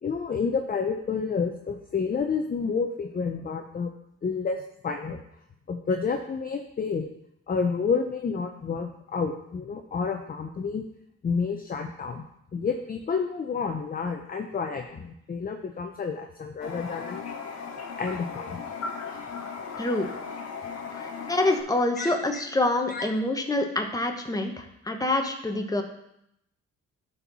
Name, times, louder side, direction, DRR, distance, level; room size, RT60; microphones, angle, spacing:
voice 1, 0.0-3.9 4.2-4.6 4.8-5.2 5.7-7.1 7.5-10.8 11.2-12.3 12.5-17.6 18.0-18.6 22.0-22.1 22.9-23.0, left 5 dB, 30° left, 5 dB, 0.7 m, -29 dB
Toilet flush, 16.6-21.6, left 5 dB, 60° left, 1.5 m, -37 dB
voice 2, 19.8-20.1 20.9-25.8, left 2 dB, 10° left, 4 dB, 1.2 m, -26 dB
11.5 x 4.6 x 4.1 m, 0.79 s
cardioid pair, 90°, 30 cm